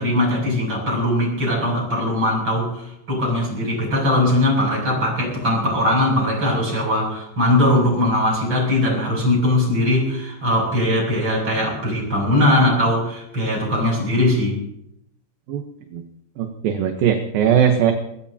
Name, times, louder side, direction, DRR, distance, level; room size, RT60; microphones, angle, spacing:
voice 1, 0.0-14.6, left 1 dB, 25° right, -1 dB, 7.8 m, -20 dB
voice 2, 16.4-17.9, right 8 dB, 70° right, 4 dB, 2.5 m, -19 dB
23.5 x 21.0 x 2.9 m, 0.80 s
omnidirectional pair, 5.0 m